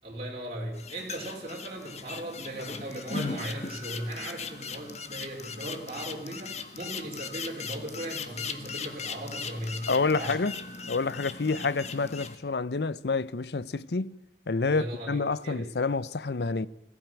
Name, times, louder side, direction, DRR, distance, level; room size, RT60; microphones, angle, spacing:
voice 1, 0.0-9.9 10.2-10.4 14.6-15.7, right 1 dB, 35° right, 4.7 m, -38 dB
sound 1, 0.7-12.4, left 5 dB, 40° left, 1.5 m, -39 dB
sound 2, 2.6-6.0 9.3-12.8, equal, 10° right, 5.1 m, -53 dB
voice 2, 9.9-10.5 10.9-14.2 14.5-16.7, left 4 dB, 65° left, 0.7 m, -28 dB
21.0 x 15.0 x 9.0 m
head